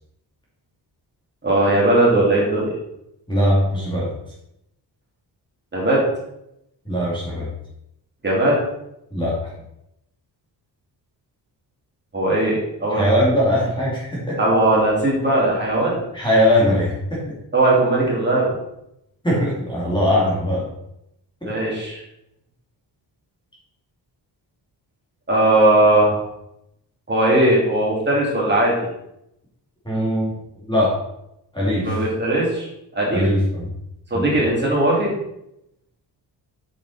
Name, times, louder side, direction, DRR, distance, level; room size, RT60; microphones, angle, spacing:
voice 1, 1.4-2.7 5.7-6.0 8.2-8.6 12.1-13.1 14.4-16.0 17.5-18.6 21.4-22.0 25.3-26.2 27.1-28.7 31.8-32.7 32.9-33.3 34.1-35.1, right 1 dB, 25° right, -5 dB, 2.8 m, -18 dB
voice 2, 3.3-4.1 6.9-7.5 9.1-9.5 12.9-14.4 16.1-17.4 19.2-20.7 21.4-21.5 29.8-30.3 30.7-31.0 31.5-31.9 33.1-33.6 34.1-34.2, equal, 10° left, -6 dB, 2.5 m, -20 dB
8.3 x 7.1 x 4.2 m, 0.81 s
wide cardioid pair, 165°, 45 cm